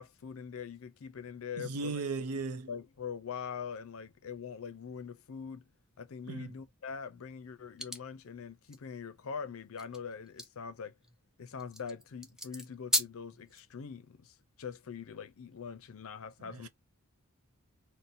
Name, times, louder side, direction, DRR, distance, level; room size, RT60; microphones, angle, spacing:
voice 1, 0.0-2.0 2.7-5.7 6.0-11.0 11.4-16.7, left 6 dB, 65° left, 0.5 m, -43 dB
voice 2, 1.6-2.7 6.3-6.5 16.4-16.7, right 4 dB, 80° right, 0.5 m, -37 dB
sound 1, 7.8-8.0 8.7-8.8 9.8-13.6, equal, ahead, 0.4 m, -36 dB
2.6 x 2.1 x 4.0 m
head